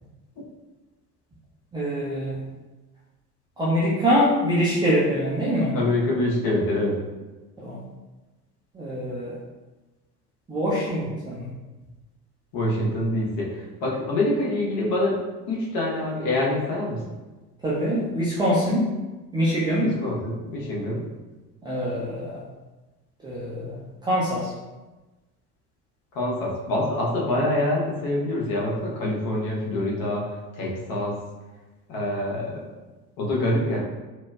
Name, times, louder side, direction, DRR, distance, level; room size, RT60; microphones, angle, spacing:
voice 1, 1.7-2.4 3.6-5.7 7.6-7.8 8.7-9.3 10.5-11.5 17.6-18.9 19.3-19.9 21.6-22.4 23.2-23.7 24.0-24.5, equal, 10° right, -9 dB, 0.3 m, -24 dB
voice 2, 5.7-7.0 12.5-15.2 15.5-17.0 19.8-21.0 26.1-30.3 30.5-31.1 31.9-32.7 33.2-33.8, left 1 dB, 45° left, -3 dB, 1.0 m, -25 dB
4.2 x 2.1 x 2.2 m, 1.2 s
figure-of-eight pair, 65°, 47 cm